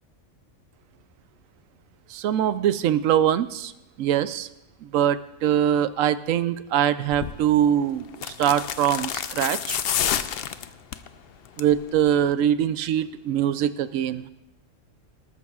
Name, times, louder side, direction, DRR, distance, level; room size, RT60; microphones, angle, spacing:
voice 1, 2.1-3.7 4.0-4.5 4.8-9.8 11.6-14.3, right 10 dB, 85° right, 13 dB, 1.0 m, -23 dB
sound 1, 7.1-7.4 8.1-11.1 11.5-11.8 12.1-12.2, left 9 dB, 60° left, 0.7 m, -28 dB
19.5 x 13.5 x 2.4 m, 0.90 s
omnidirectional pair, 1.3 m